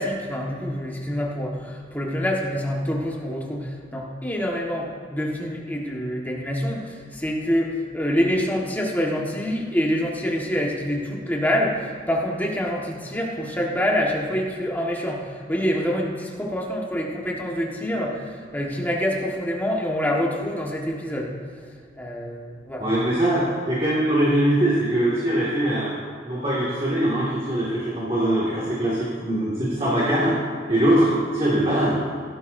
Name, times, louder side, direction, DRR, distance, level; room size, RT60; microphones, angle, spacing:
voice 1, 0.0-18.2 18.5-21.3 22.0-22.8, equal, 10° left, -2 dB, 1.5 m, -26 dB
voice 2, 22.8-25.9 26.2-30.4 30.7-32.0, right 1 dB, 30° right, -7 dB, 2.1 m, -22 dB
16.5 x 12.0 x 2.7 m, 2.2 s
head